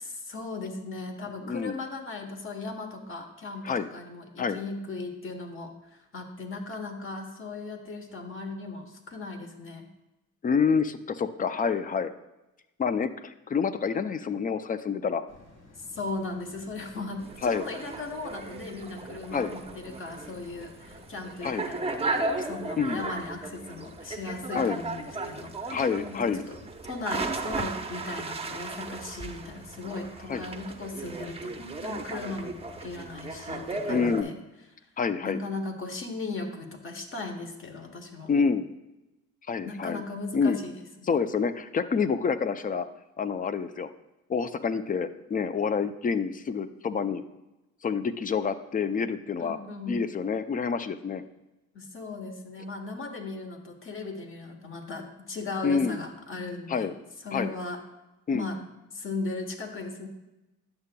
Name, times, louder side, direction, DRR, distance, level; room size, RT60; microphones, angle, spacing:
voice 1, 0.0-9.9 15.8-26.6 26.9-34.3 35.2-38.3 39.6-40.7 41.0-41.1 49.4-50.0 51.7-56.9 57.2-57.8 58.3-58.6 58.9-60.1, left 3 dB, 45° left, 4 dB, 1.1 m, -37 dB
voice 2, 10.4-12.1 12.8-15.2 17.4-17.6 19.3-19.5 21.4-21.7 22.8-23.1 24.5-24.8 25.7-26.5 30.3-30.4 33.9-34.3 35.0-35.4 38.3-38.7 39.5-40.0 40.3-40.6 41.1-42.9 43.2-43.9 44.3-47.2 47.8-49.6 49.9-51.2 55.6-56.0 56.7-56.9 57.3-57.6 58.3-58.5, left 5 dB, 30° left, 12 dB, 0.4 m, -27 dB
sound 1, 15.3-26.0 26.4-26.5, left 2 dB, 80° left, 1.4 m, -56 dB
sound 2, 17.2-34.2, right 3 dB, 20° right, 0.6 m, -36 dB
9.6 x 6.6 x 2.2 m, 0.98 s
cardioid pair, 90°, 30 cm